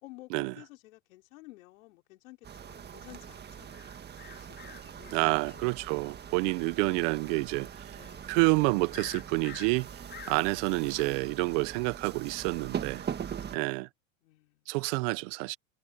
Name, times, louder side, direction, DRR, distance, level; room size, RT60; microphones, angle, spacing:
voice 1, 0.0-4.0 4.3-5.7 7.9-8.3 13.2-13.7 14.2-14.6, left 20 dB, 75° left, 5.3 m, -53 dB
sound 1, 2.4-13.6, right 8 dB, 25° right, 1.7 m, -42 dB
sound 2, 3.7-11.0, left 8 dB, 25° left, 4.1 m, -51 dB
voice 2, 5.1-7.9 8.3-9.9 10.3-13.0 13.5-13.9 14.7-15.6, right 26 dB, 60° right, 1.0 m, -28 dB
supercardioid pair, 115°, 41 cm